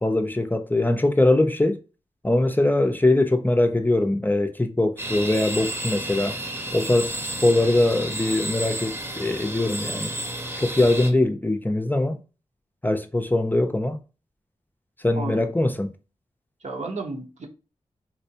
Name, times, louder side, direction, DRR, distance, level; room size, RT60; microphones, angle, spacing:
voice 1, 0.0-1.8 2.2-6.4 6.7-10.1 10.6-12.2 12.8-14.0 15.0-15.9, left 2 dB, 15° left, 0.5 m, -22 dB
sound 1, 5.0-11.1, right 1 dB, 20° right, 0.9 m, -32 dB
voice 2, 15.1-15.5 16.6-17.5, right 3 dB, 70° right, 1.0 m, -33 dB
4.1 x 2.1 x 2.8 m
cardioid pair, 55°, 12 cm